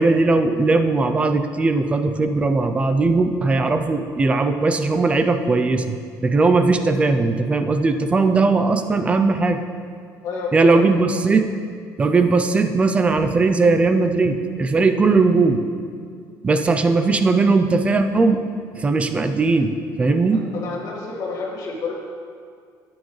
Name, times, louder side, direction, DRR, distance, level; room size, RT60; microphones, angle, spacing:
voice 1, 0.0-6.0 6.2-9.6 10.5-11.5 12.0-15.6 16.4-18.4 18.7-20.4, right 3 dB, 15° right, 8 dB, 0.5 m, -18 dB
voice 2, 10.2-10.8 20.3-21.9, left 4 dB, 55° left, -2 dB, 1.9 m, -29 dB
12.5 x 8.7 x 3.2 m, 2.2 s
cardioid pair, 170°, 7 cm